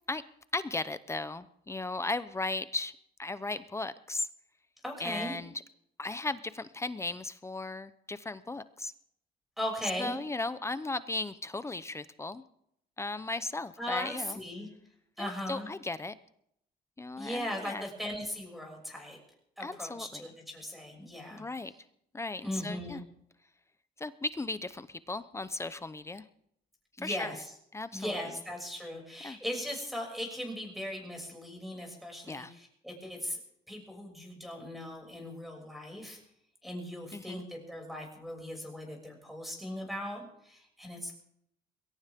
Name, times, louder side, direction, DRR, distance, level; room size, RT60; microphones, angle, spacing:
voice 1, 0.5-2.9 3.2-4.3 5.0-5.5 6.0-8.9 10.0-12.4 13.0-14.4 15.2-16.1 17.0-17.9 19.6-20.3 21.3-21.7 22.1-23.0 24.0-26.2 27.0-27.3 27.7-28.2 29.2-29.4 32.3-32.5 37.1-37.4, left 2 dB, 15° left, 14 dB, 0.8 m, -36 dB
voice 2, 4.8-5.4 9.6-10.2 13.8-14.7 15.2-15.7 17.2-19.2 19.6-21.4 22.4-23.0 27.0-27.5 27.9-33.4 33.7-36.2 36.6-41.1, left 1 dB, ahead, 1 dB, 6.6 m, -38 dB
22.0 x 17.5 x 3.6 m, 0.72 s
cardioid pair, 110°, 17 cm